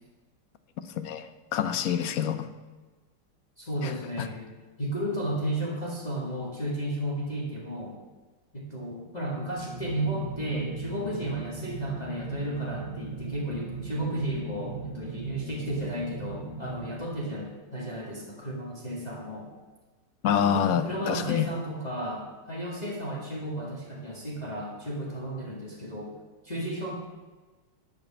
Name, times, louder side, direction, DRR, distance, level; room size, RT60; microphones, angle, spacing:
voice 1, 1.0-2.5 3.8-4.3 20.2-21.5, left 8 dB, 60° left, 10 dB, 1.1 m, -27 dB
voice 2, 3.6-4.5 4.8-8.0 8.5-19.5 20.4-26.1 26.4-26.9, right 1 dB, 25° left, -3 dB, 1.9 m, -33 dB
sound 1, 9.3-17.6, right 3 dB, 5° right, 2.2 m, -38 dB
12.0 x 5.1 x 8.8 m, 1.3 s
omnidirectional pair, 2.0 m